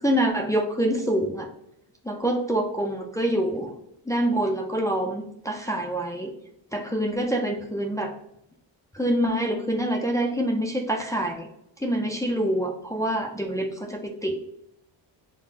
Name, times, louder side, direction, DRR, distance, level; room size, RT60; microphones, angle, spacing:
voice 1, 0.0-1.5 2.0-3.7 4.1-6.3 6.7-8.1 8.9-11.5 11.8-14.4, right 1 dB, 10° left, 0 dB, 0.3 m, -26 dB
5.6 x 2.0 x 2.4 m, 0.78 s
cardioid pair, 95°, 45 cm